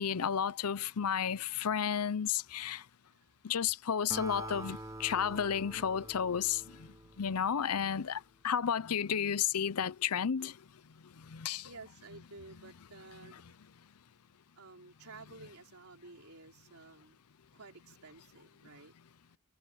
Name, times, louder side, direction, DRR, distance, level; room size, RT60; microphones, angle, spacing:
voice 1, 0.0-2.8 3.4-10.6 11.0-11.7, left 8 dB, 85° left, 0.6 m, -32 dB
Acoustic guitar, 4.1-7.7, right 2 dB, 15° right, 0.9 m, -46 dB
voice 2, 11.4-13.6 14.6-17.2 17.5-18.9, right 3 dB, 75° right, 3.8 m, -53 dB
head